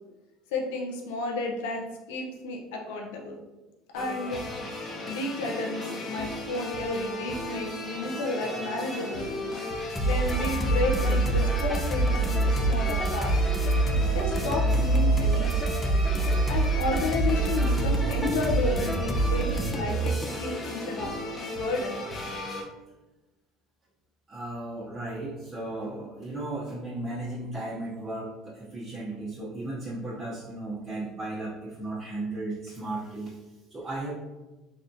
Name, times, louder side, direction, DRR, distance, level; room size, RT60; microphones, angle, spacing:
voice 1, 0.5-3.4 3.9-4.4 5.1-9.5 10.0-13.7 14.1-15.5 16.5-21.1 21.6-22.0, left 2 dB, 85° left, 1 dB, 0.5 m, -32 dB
sound 1, 3.9-22.6, left 1 dB, 35° left, 0.8 m, -36 dB
sound 2, 10.0-20.5, right 2 dB, 15° left, 0.4 m, -25 dB
voice 2, 24.3-34.1, right 2 dB, 30° right, -8 dB, 0.7 m, -35 dB
3.4 x 2.3 x 2.6 m, 1.1 s
supercardioid pair, 95°, 0 cm